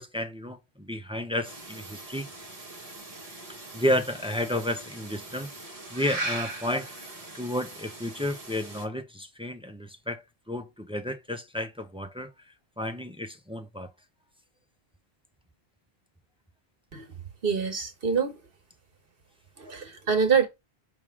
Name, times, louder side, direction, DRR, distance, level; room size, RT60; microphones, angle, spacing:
voice 1, 0.0-2.3 3.7-6.9 7.3-12.3 12.8-13.9, left 1 dB, 5° right, 0.6 m, -32 dB
sound 1, 1.4-8.9, right 2 dB, 35° right, 1.6 m, -40 dB
voice 2, 17.4-18.4 19.6-20.5, right 6 dB, 65° right, 1.6 m, -25 dB
6.0 x 3.6 x 4.6 m
omnidirectional pair, 1.0 m